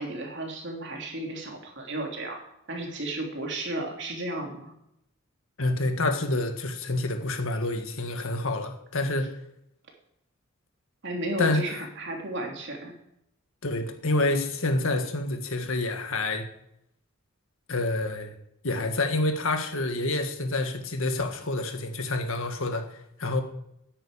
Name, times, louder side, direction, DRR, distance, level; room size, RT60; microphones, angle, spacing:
voice 1, 0.0-2.4 2.7-4.7 11.0-12.9, right 1 dB, 50° right, 1 dB, 3.1 m, -33 dB
voice 2, 5.6-9.3 11.4-11.6 13.6-16.5 17.7-18.3 18.6-23.4, left 2 dB, 65° left, 5 dB, 1.8 m, -28 dB
10.5 x 9.0 x 8.8 m, 0.79 s
head